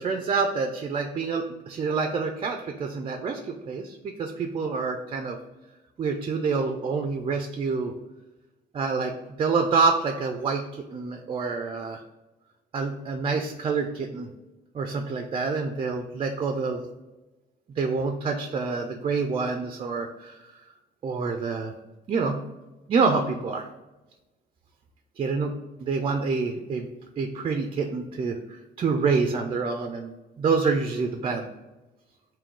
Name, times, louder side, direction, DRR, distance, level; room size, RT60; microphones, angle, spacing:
voice 1, 0.0-5.4 6.0-7.9 8.7-9.1 9.4-12.0 12.7-14.3 14.7-16.8 17.8-20.6 21.0-21.7 22.1-22.4 22.9-23.7 25.2-25.5 25.8-26.9 27.2-31.5, right 4 dB, 35° right, 4 dB, 0.4 m, -27 dB
3.6 x 2.6 x 3.8 m, 1.1 s
cardioid pair, 110°, 17 cm